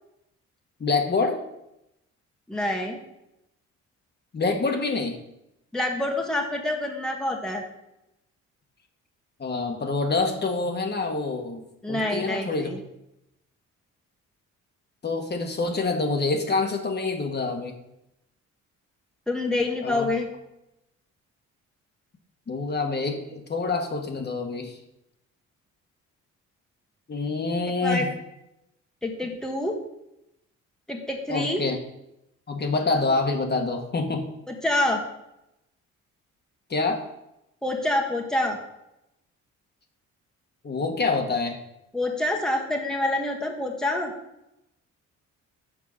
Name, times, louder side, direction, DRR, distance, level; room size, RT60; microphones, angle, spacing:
voice 1, 0.8-1.4 4.3-5.2 9.4-12.7 15.0-17.7 19.8-20.1 22.5-24.8 27.1-28.1 31.3-31.8 32.5-34.3 36.7-37.0 40.6-41.6, left 3 dB, 35° left, 3 dB, 1.4 m, -26 dB
voice 2, 2.5-3.0 5.7-7.6 11.8-12.8 19.3-20.3 27.8-28.1 29.0-29.7 30.9-31.6 34.5-35.0 37.6-38.6 41.9-44.1, left 1 dB, ahead, 1 dB, 1.3 m, -27 dB
7.4 x 4.5 x 6.4 m, 0.86 s
cardioid pair, 90°, 30 cm